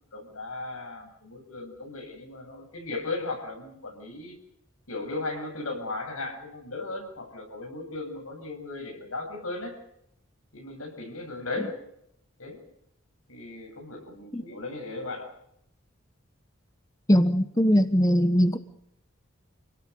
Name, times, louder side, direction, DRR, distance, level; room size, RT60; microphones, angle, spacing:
voice 1, 0.1-4.4 4.9-9.8 10.5-11.7 12.4-12.6 13.3-15.3, left 2 dB, 90° left, 4 dB, 7.2 m, -36 dB
voice 2, 17.1-18.6, equal, 15° left, 11 dB, 1.0 m, -21 dB
29.0 x 18.0 x 6.8 m, 0.78 s
head